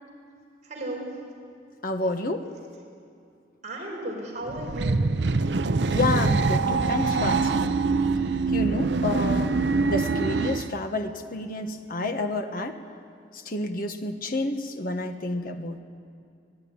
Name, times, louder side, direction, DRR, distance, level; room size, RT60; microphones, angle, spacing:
voice 1, 0.6-1.2 2.0-2.1 3.6-5.1, right 1 dB, 45° right, -1 dB, 5.0 m, -35 dB
voice 2, 1.8-2.5 5.9-7.8 8.5-9.6 9.8-12.8 13.4-15.8, left 2 dB, 50° left, 6 dB, 1.5 m, -29 dB
sound 1, 4.5-10.7, right 3 dB, 70° right, 0.7 m, -24 dB
24.5 x 18.0 x 9.7 m, 2.5 s
head